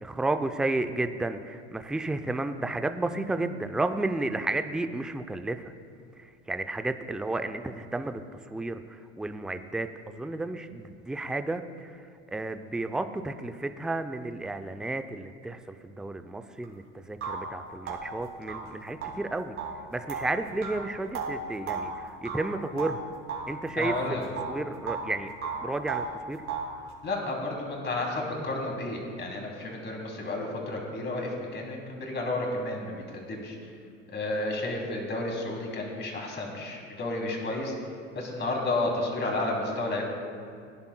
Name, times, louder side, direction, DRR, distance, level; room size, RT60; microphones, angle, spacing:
voice 1, 0.0-5.6 6.5-8.2 8.5-8.8 9.2-11.9 12.3-19.5 19.9-21.9 22.2-23.0 23.5-23.9 24.5-25.3 25.6-26.4, right 2 dB, ahead, 9 dB, 0.4 m, -32 dB
sound 1, 16.6-16.7 17.2-23.5 23.8-25.1 25.4-26.8, right 4 dB, 40° right, 2.5 m, -35 dB
voice 2, 23.8-24.3 27.0-33.6 34.1-37.7 38.1-40.0, left 2 dB, 30° left, 0 dB, 2.9 m, -31 dB
19.0 x 10.5 x 2.2 m, 2.3 s
hypercardioid pair, 80°, 35 cm